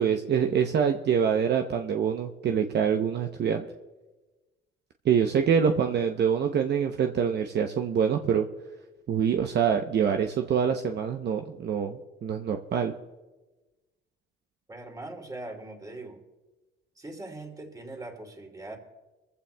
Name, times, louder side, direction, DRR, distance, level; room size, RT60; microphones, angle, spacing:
voice 1, 0.0-3.7 5.0-8.5 9.1-12.9, right 7 dB, 60° right, 4 dB, 0.8 m, -25 dB
voice 2, 14.7-16.2 17.0-18.8, right 2 dB, 20° right, 2 dB, 2.7 m, -41 dB
23.0 x 15.0 x 2.3 m, 1.2 s
cardioid pair, 90°, 20 cm